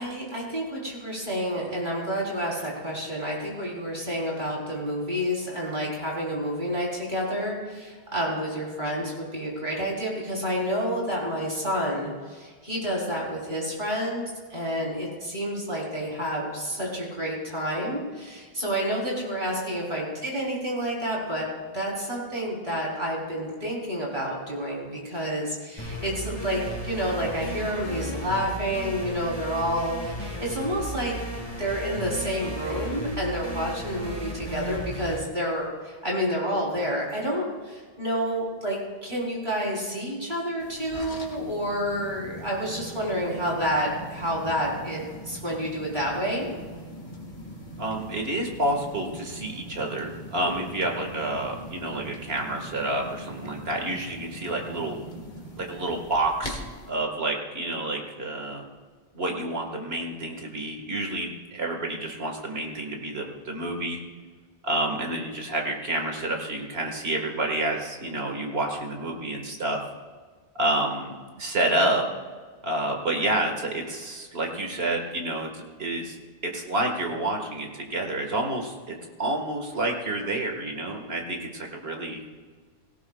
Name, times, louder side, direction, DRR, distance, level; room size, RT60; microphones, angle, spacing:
voice 1, 0.0-31.1 31.6-46.5, equal, 50° right, -3 dB, 4.1 m, -29 dB
sound 1, 25.8-35.2, equal, 25° left, 2.9 m, -35 dB
sound 2, 40.6-56.9, equal, 50° left, 2.0 m, -41 dB
voice 2, 47.8-55.0 55.6-58.7 59.1-64.0 64.6-69.8 70.6-72.0 72.6-76.2 76.4-82.2, right 1 dB, 75° right, 2 dB, 2.0 m, -29 dB
17.5 x 17.0 x 2.4 m, 1.5 s
omnidirectional pair, 1.1 m